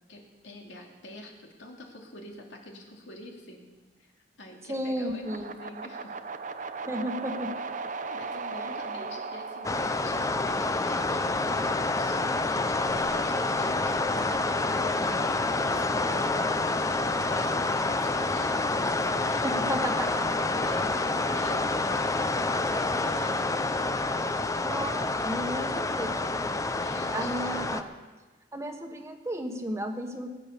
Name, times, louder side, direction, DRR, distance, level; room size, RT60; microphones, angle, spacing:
voice 1, 0.1-3.6 4.0-4.1 4.4-6.2 8.1-16.3 16.7-19.5 20.4-23.8 26.8-27.8, left 1 dB, 75° left, 0 dB, 2.7 m, -46 dB
voice 2, 4.7-5.5 6.8-7.6 8.6-8.7 9.0-9.2 19.4-20.3 24.6-26.5 27.1-27.9 28.5-30.3, equal, 15° right, 4 dB, 1.4 m, -34 dB
sound 1, 5.2-11.3, right 4 dB, 45° right, 0.7 m, -38 dB
sound 2, 9.6-27.8, left 2 dB, 20° left, 0.6 m, -28 dB
20.5 x 9.2 x 6.8 m, 1.3 s
head